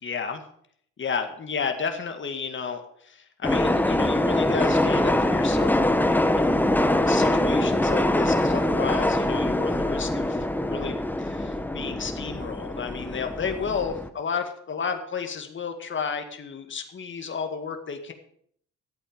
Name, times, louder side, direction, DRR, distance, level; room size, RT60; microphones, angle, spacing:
voice 1, 0.0-0.4 1.0-6.0 6.4-6.6 7.1-18.1, left 6 dB, 40° left, 6 dB, 2.0 m, -32 dB
sound 1, 3.4-14.1, left 1 dB, 5° left, 1.1 m, -23 dB
13.0 x 8.6 x 7.1 m, 0.65 s
cardioid pair, 90°, 30 cm